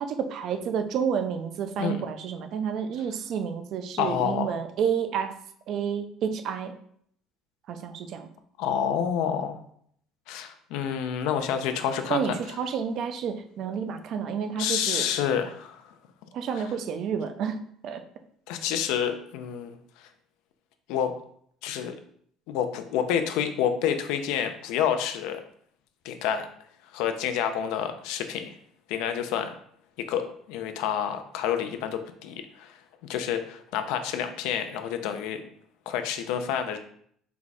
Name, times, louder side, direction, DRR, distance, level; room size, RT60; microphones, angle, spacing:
voice 1, 0.0-5.3 5.7-6.7 7.7-8.3 12.1-15.1 16.3-18.0, right 7 dB, 50° right, 8 dB, 0.4 m, -30 dB
voice 2, 4.0-4.5 8.6-9.6 10.3-12.4 14.6-15.8 18.5-20.1 20.9-21.2 21.6-22.0 22.5-25.4 26.0-26.5 26.9-28.5 28.9-29.5 30.0-32.7 33.1-35.4 35.9-36.8, left 8 dB, 75° left, 8 dB, 0.5 m, -28 dB
4.5 x 2.3 x 4.1 m, 0.64 s
cardioid pair, 155°, 0 cm